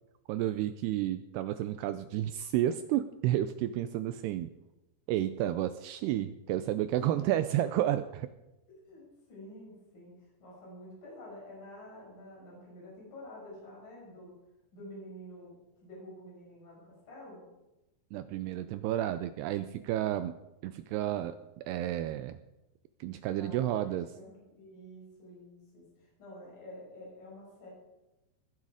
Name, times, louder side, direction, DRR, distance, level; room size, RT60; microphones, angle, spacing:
voice 1, 0.3-4.5 5.1-8.3 18.1-20.4 20.6-22.4 23.0-24.1, right 12 dB, 85° right, 11 dB, 2.4 m, -31 dB
voice 2, 6.9-7.3 8.7-10.1 10.4-14.3 14.7-17.5 23.4-27.7, left 1 dB, 45° left, -4 dB, 8.1 m, -49 dB
21.0 x 10.5 x 4.9 m, 0.98 s
omnidirectional pair, 5.3 m